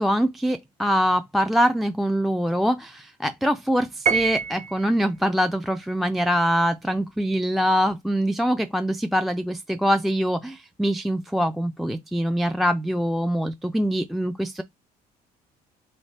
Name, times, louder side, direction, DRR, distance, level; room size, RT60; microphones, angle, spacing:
voice 1, 0.0-14.6, equal, ahead, 0.3 m, -24 dB
Piano, 4.1-5.0, right 6 dB, 50° right, 0.6 m, -25 dB
3.5 x 3.3 x 4.0 m
cardioid pair, 110°, 17 cm